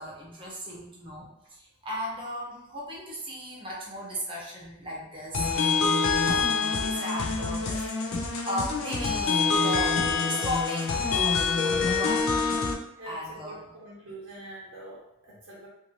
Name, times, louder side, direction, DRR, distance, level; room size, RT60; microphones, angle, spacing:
voice 1, 0.0-7.9 8.5-12.2 13.0-13.7, equal, 25° right, -4 dB, 0.7 m, -36 dB
sound 1, 5.3-12.7, left 4 dB, 70° left, 0.4 m, -26 dB
voice 2, 7.5-8.1 13.0-15.7, right 1 dB, 70° right, -6 dB, 0.7 m, -44 dB
2.5 x 2.5 x 3.0 m, 0.84 s
head